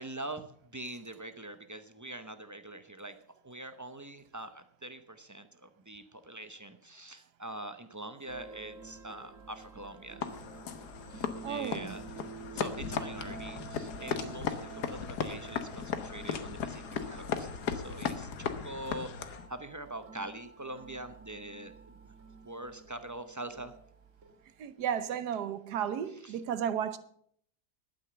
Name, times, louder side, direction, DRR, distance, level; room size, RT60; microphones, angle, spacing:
voice 1, 0.0-3.2 3.4-10.3 11.1-12.1 12.5-17.5 17.7-22.1 22.4-23.7 26.2-26.4, right 1 dB, 25° right, 0.4 m, -44 dB
sound 1, 8.3-25.1, right 5 dB, 55° right, 1.9 m, -50 dB
sound 2, 10.2-19.5, left 7 dB, 85° left, 1.6 m, -37 dB
voice 2, 11.4-12.0 24.6-27.0, right 8 dB, 85° right, 1.4 m, -33 dB
11.5 x 9.2 x 6.8 m
omnidirectional pair, 1.7 m